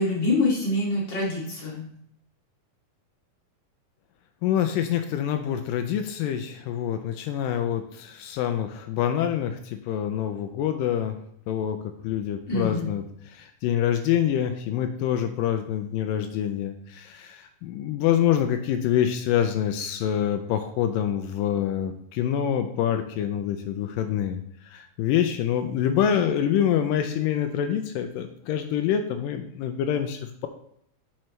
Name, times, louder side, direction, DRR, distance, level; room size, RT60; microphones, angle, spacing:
voice 1, 0.0-1.9 12.5-12.9 26.1-26.3, left 2 dB, 35° left, -5 dB, 2.8 m, -25 dB
voice 2, 4.4-11.2 11.5-11.8 12.0-13.0 13.3-24.4 24.7-30.5, left 10 dB, 85° left, 6 dB, 2.3 m, -26 dB
8.9 x 5.7 x 3.2 m, 0.69 s
omnidirectional pair, 3.9 m